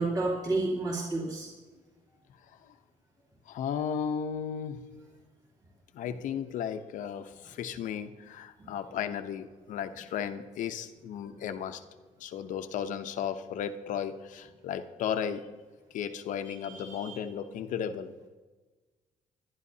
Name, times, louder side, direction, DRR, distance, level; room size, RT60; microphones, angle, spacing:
voice 1, 0.0-1.5 6.0-6.1 11.3-11.4 16.4-17.2, right 2 dB, 30° right, -6 dB, 3.1 m, -31 dB
voice 2, 3.5-4.8 5.9-11.8 12.2-15.5 15.9-18.1, left 8 dB, 75° left, 9 dB, 0.8 m, -35 dB
22.0 x 11.5 x 2.8 m, 1.3 s
cardioid pair, 145°, 13 cm